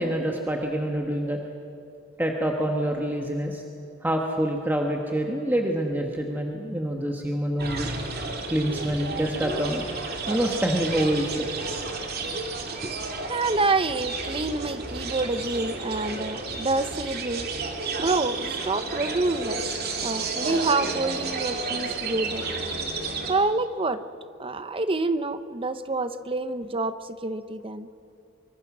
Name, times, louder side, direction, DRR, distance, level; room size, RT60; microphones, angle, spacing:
voice 1, 0.0-1.4 2.2-3.6 4.0-7.9 8.5-9.9 10.3-11.5, right 1 dB, 10° right, 1 dB, 1.4 m, -26 dB
sound 1, 7.6-23.3, right 3 dB, 50° right, 2.7 m, -32 dB
voice 2, 13.3-17.5 18.0-19.6 20.0-22.5 23.3-24.0 24.4-27.9, right 3 dB, 25° right, 12 dB, 0.8 m, -27 dB
25.0 x 24.5 x 6.2 m, 2.7 s
head